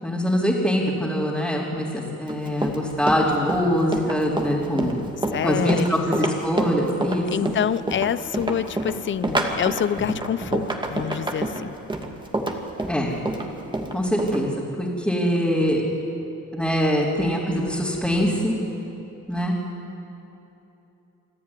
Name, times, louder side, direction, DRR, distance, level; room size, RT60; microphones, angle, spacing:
voice 1, 0.0-5.0 5.4-7.5 12.9-13.1 13.9-14.5 14.8-15.8 16.5-18.6 19.3-19.5, equal, 5° left, -6 dB, 3.6 m, -23 dB
Run, 2.3-14.4, right 2 dB, 15° right, 2.4 m, -27 dB
voice 2, 5.3-6.0 7.3-11.8, left 9 dB, 40° left, 16 dB, 0.7 m, -26 dB
26.5 x 12.5 x 9.9 m, 3.0 s
cardioid pair, 90°, 30 cm